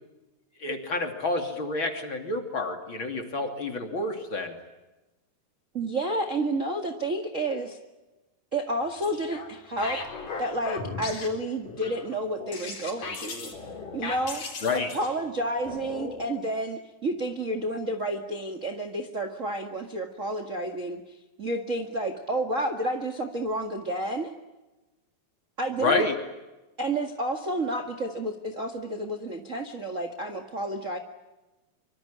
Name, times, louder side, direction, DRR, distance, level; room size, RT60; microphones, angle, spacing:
voice 1, 0.6-4.5 14.6-14.9 25.8-26.1, left 3 dB, 35° left, 5 dB, 3.3 m, -28 dB
voice 2, 5.7-7.8 8.5-10.0 10.4-13.5 13.9-14.4 14.7-21.0 21.4-24.3 25.6-26.0 26.8-31.0, right 1 dB, 30° right, 6 dB, 1.6 m, -30 dB
sound 1, 8.8-9.5 9.8-16.3, left 4 dB, 65° left, 5.8 m, -37 dB
25.0 x 25.0 x 8.8 m, 1.1 s
omnidirectional pair, 4.1 m